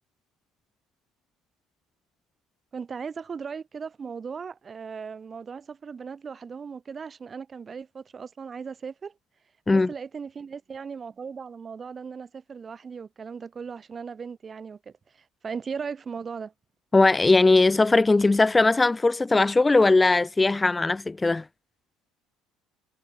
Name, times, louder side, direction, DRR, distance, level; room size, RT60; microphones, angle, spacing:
voice 1, 2.7-9.1 9.7-16.5, right 6 dB, 35° right, 3.2 m, -37 dB
voice 2, 16.9-21.4, left 3 dB, 20° left, 0.7 m, -19 dB
hypercardioid pair, 65°, 0 cm